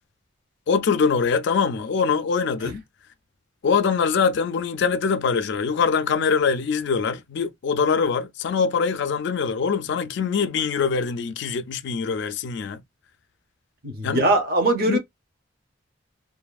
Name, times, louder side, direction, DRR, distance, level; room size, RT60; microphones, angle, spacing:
voice 1, 0.7-2.8 3.6-12.8 14.0-14.3 14.9-15.0, left 5 dB, 60° left, 0.3 m, -23 dB
voice 2, 13.8-15.0, right 2 dB, 50° right, 0.7 m, -21 dB
2.6 x 2.4 x 2.3 m
head